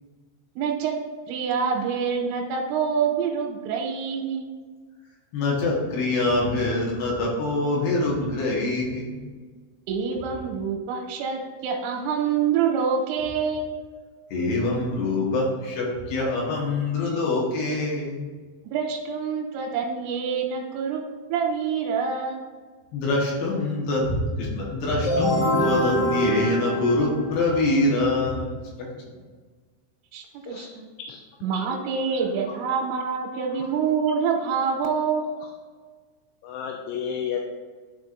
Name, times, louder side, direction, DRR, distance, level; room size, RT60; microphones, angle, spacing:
voice 1, 0.6-1.0 1.3-4.5 9.9-13.7 18.7-21.0 21.3-22.5 30.1-30.9 31.4-35.2, right 6 dB, 90° right, 0 dB, 3.1 m, -26 dB
voice 2, 5.3-9.3 14.3-18.3 22.9-29.0, left 2 dB, 70° left, -4 dB, 3.2 m, -25 dB
sound 1, 25.0-27.7, equal, 50° left, 2.8 m, -24 dB
voice 3, 36.4-37.4, left 8 dB, 85° left, 1 dB, 3.0 m, -32 dB
12.5 x 4.6 x 2.6 m, 1.5 s
omnidirectional pair, 5.4 m